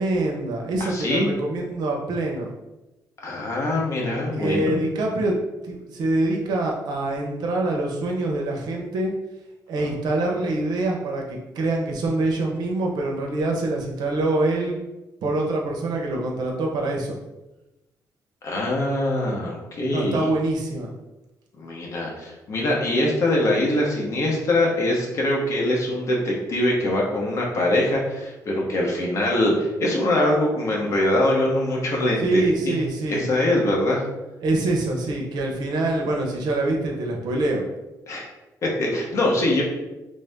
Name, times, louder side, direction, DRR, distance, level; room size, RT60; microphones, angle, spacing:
voice 1, 0.0-2.5 4.3-5.4 5.6-9.1 9.7-14.8 15.2-17.2 19.9-20.9 32.2-33.3 34.4-37.6, right 2 dB, 80° right, 0 dB, 0.7 m, -25 dB
voice 2, 0.8-1.3 3.2-4.8 9.8-9.9 18.4-20.3 21.6-32.8 33.1-34.0 38.1-38.3 38.6-39.6, left 1 dB, 45° left, -2 dB, 0.9 m, -23 dB
3.3 x 2.7 x 3.4 m, 1.0 s
cardioid pair, 155°, 7 cm